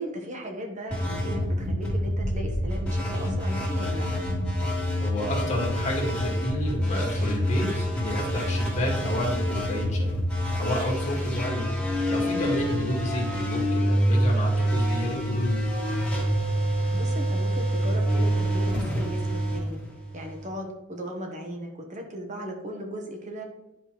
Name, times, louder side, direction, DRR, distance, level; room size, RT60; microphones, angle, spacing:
voice 1, 0.0-4.2 16.9-19.8 20.1-23.4, equal, 40° right, 2 dB, 1.1 m, -37 dB
sound 1, 0.9-20.4, equal, 5° left, 2.2 m, -26 dB
voice 2, 5.0-10.2 10.5-11.7 12.1-15.6, left 1 dB, 35° left, -2 dB, 1.9 m, -31 dB
10.5 x 4.9 x 3.1 m, 0.91 s
head